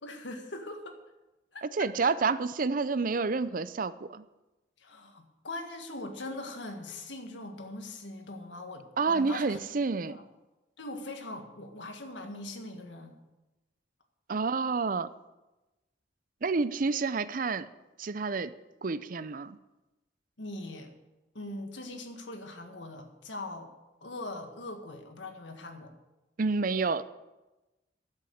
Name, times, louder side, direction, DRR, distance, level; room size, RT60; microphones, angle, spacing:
voice 1, 0.0-1.0 1.5-1.9 4.8-9.6 10.0-10.2 10.8-13.2 20.4-20.9 21.4-23.7 24.0-25.9, left 2 dB, 75° left, 5 dB, 1.7 m, -41 dB
voice 2, 1.6-4.2 9.0-10.2 14.3-15.1 16.4-17.7 18.0-18.5 18.8-19.6 26.4-27.0, right 4 dB, 45° right, 15 dB, 0.5 m, -29 dB
11.5 x 7.7 x 8.0 m, 1.0 s
head